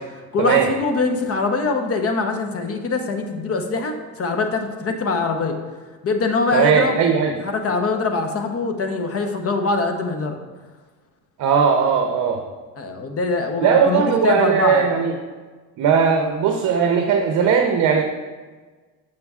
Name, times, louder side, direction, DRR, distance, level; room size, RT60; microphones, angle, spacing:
voice 1, 0.3-5.6 6.0-7.0 7.4-10.4 12.8-14.8, left 3 dB, 40° left, 5 dB, 0.8 m, -23 dB
voice 2, 6.5-7.3 11.4-12.4 13.6-15.1 15.8-18.0, right 6 dB, 50° right, 3 dB, 0.7 m, -18 dB
6.8 x 6.5 x 2.4 m, 1.4 s
supercardioid pair, 90°, 38 cm